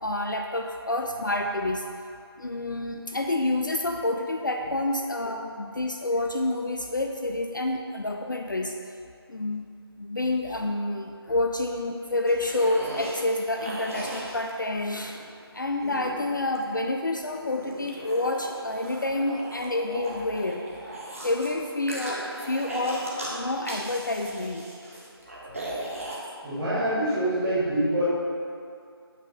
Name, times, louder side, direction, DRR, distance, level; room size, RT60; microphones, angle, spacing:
voice 1, 0.0-1.8 2.4-8.7 9.3-9.7 10.0-15.2 15.5-20.6 21.2-24.7, left 2 dB, 50° left, 3 dB, 0.4 m, -28 dB
sound 1, 12.3-15.2 15.8-16.8 17.4-21.5 21.9-23.4 23.6-26.2, right 1 dB, 35° right, 0.9 m, -38 dB
voice 2, 26.4-28.0, right 1 dB, 5° right, -15 dB, 1.1 m, -25 dB
8.1 x 2.9 x 5.1 m, 2.4 s
figure-of-eight pair, 170°, 13 cm